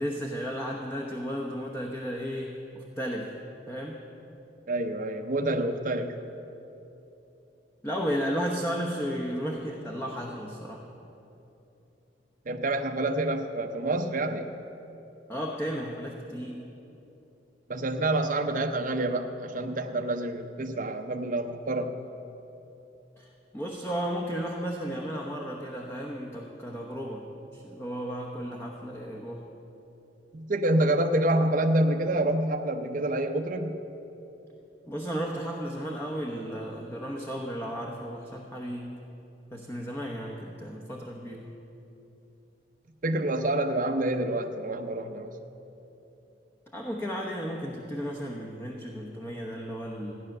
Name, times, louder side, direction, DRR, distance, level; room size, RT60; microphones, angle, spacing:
voice 1, 0.0-3.3 3.7-4.0 7.8-10.9 15.3-16.7 23.2-29.5 34.9-39.0 39.5-41.5 46.7-50.1, equal, 15° left, -1 dB, 1.0 m, -34 dB
voice 2, 4.7-6.2 12.5-14.5 17.7-22.0 30.3-33.8 43.0-45.3, right 1 dB, 50° right, 4 dB, 0.7 m, -27 dB
15.5 x 10.0 x 6.6 m, 2.9 s
head